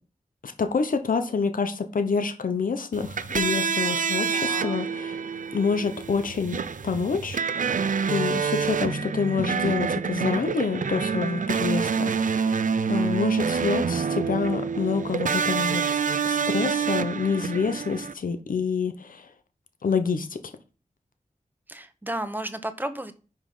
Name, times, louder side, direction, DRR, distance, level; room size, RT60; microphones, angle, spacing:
voice 1, 0.4-5.2 5.5-19.3 19.8-20.3, left 5 dB, 85° left, 8 dB, 0.8 m, -27 dB
sound 1, 2.9-18.1, right 6 dB, 70° right, 0.5 m, -27 dB
voice 2, 4.2-4.8 21.7-23.2, right 1 dB, 15° right, 10 dB, 1.0 m, -33 dB
5.4 x 4.9 x 5.4 m, 0.35 s
cardioid pair, 50°, 14 cm